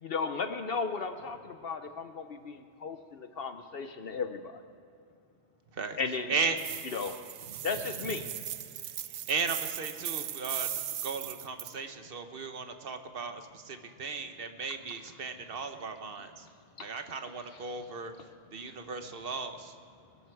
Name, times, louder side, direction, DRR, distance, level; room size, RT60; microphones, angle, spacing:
voice 1, 0.0-4.6 6.0-6.4 6.9-7.2 7.6-8.3 16.8-16.9, left 5 dB, 60° left, 8 dB, 0.9 m, -35 dB
sound 1, 6.6-11.7, right 11 dB, 75° right, 0.9 m, -38 dB
voice 2, 9.1-10.7 11.0-16.5 16.8-18.1 18.5-19.7, right 4 dB, 55° right, 7 dB, 1.2 m, -36 dB
voice 3, 13.6-14.7 15.1-17.1 17.4-19.3 19.9-20.3, left 3 dB, 35° left, 7 dB, 0.6 m, -63 dB
21.5 x 12.5 x 4.7 m, 2.5 s
omnidirectional pair, 1.2 m